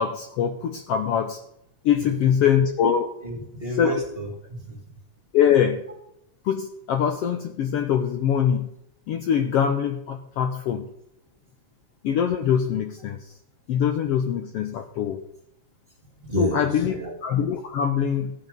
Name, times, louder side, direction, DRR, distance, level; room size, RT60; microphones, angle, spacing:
voice 1, 0.0-1.4 1.8-3.1 3.8-4.0 5.3-5.8 6.4-8.7 9.1-10.9 12.0-13.3 13.7-15.2 16.4-17.0 17.2-18.3, left 8 dB, 70° left, 6 dB, 1.6 m, -23 dB
voice 2, 3.2-5.0 16.2-17.1, equal, 20° right, 1 dB, 2.1 m, -31 dB
14.5 x 8.6 x 5.3 m, 0.79 s
omnidirectional pair, 3.4 m